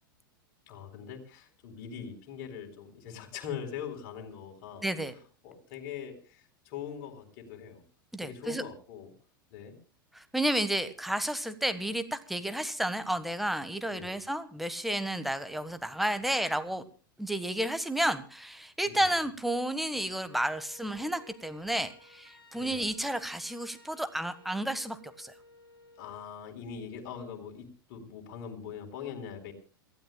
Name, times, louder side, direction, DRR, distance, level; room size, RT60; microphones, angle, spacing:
voice 1, 0.7-4.9 5.4-7.8 8.2-9.1 9.5-9.8 13.9-14.2 18.9-19.2 22.5-22.9 26.0-29.5, left 7 dB, 45° left, 3 dB, 4.0 m, -42 dB
voice 2, 4.8-5.2 8.1-8.6 10.1-16.8 17.2-25.3, right 1 dB, ahead, 11 dB, 1.4 m, -31 dB
Wind instrument woodwind instrument, 20.2-26.3, left 1 dB, 90° left, 2.0 m, -56 dB
28.0 x 15.5 x 2.3 m, 0.35 s
figure-of-eight pair, 90°, 12 cm